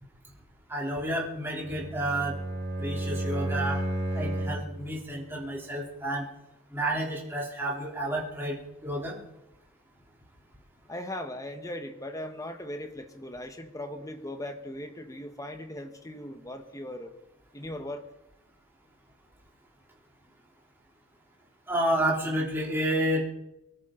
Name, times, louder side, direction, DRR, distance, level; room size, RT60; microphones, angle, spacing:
voice 1, 0.7-2.4 2.8-3.9 4.1-6.3 6.7-8.6 8.8-9.2 21.7-23.2, right 1 dB, 10° right, -3 dB, 3.4 m, -30 dB
Bowed string instrument, 1.6-4.8, right 1 dB, 65° right, 5.8 m, -32 dB
voice 2, 10.9-17.1 17.5-18.0, left 1 dB, 15° left, 6 dB, 1.3 m, -38 dB
23.5 x 13.0 x 3.9 m, 0.91 s
head